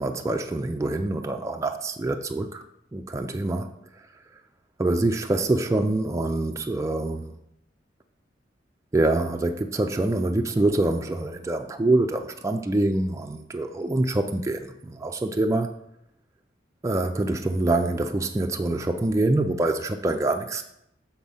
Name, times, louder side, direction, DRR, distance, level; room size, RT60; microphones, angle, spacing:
voice 1, 0.0-2.6 2.9-3.7 4.8-7.4 8.9-15.7 16.8-20.6, right 2 dB, 15° right, 0.3 m, -25 dB
7.4 x 4.3 x 5.5 m
head